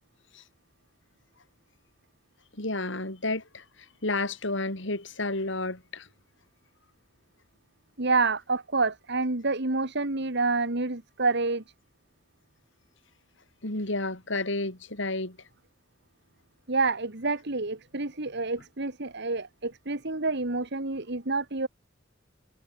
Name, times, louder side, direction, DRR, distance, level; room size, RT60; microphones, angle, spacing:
voice 1, 2.6-6.1 13.6-15.4, left 2 dB, 65° left, 4.6 m, -31 dB
voice 2, 8.0-11.6 16.7-21.7, right 3 dB, 60° right, 2.1 m, -28 dB
head